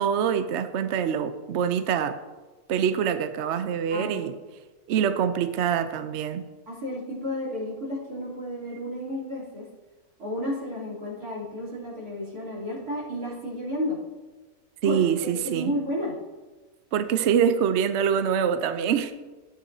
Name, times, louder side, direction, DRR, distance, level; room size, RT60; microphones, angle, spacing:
voice 1, 0.0-2.2 2.7-4.4 4.9-6.4 14.8-15.7 16.9-19.1, right 8 dB, 60° right, 10 dB, 0.8 m, -25 dB
voice 2, 3.8-4.2 6.7-9.7 10.2-14.0 14.8-16.2, left 1 dB, 90° right, -6 dB, 3.8 m, -32 dB
13.0 x 9.2 x 2.7 m, 1.2 s
omnidirectional pair, 1.5 m